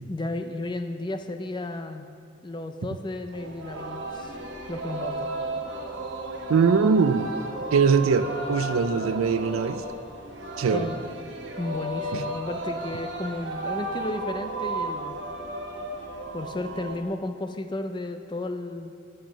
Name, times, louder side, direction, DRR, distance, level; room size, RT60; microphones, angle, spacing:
voice 1, 0.1-2.1 2.4-4.4 4.7-5.3 10.7-11.0 11.6-15.1 16.3-18.9, left 2 dB, 20° left, 8 dB, 0.4 m, -33 dB
Singing, 3.3-17.0, right 2 dB, 60° right, 1.0 m, -34 dB
voice 2, 6.5-7.3 7.7-9.8 10.6-10.9, right 5 dB, 90° right, 12 dB, 0.4 m, -21 dB
7.6 x 7.0 x 6.3 m, 2.4 s
head